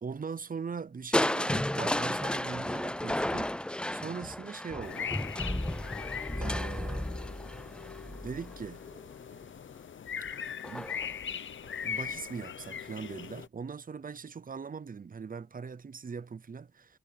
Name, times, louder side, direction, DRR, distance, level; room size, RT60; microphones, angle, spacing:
voice 1, 0.0-5.1 6.4-7.1 8.0-8.8 10.7-10.9 11.8-17.0, right 5 dB, 45° right, 0.7 m, -41 dB
Crushing, 1.1-9.1 10.6-11.1 11.6-11.7, left 1 dB, 5° left, 0.4 m, -33 dB
sound 1, 4.8-13.5, left 7 dB, 70° left, 0.8 m, -40 dB
wide cardioid pair, 105°, 21 cm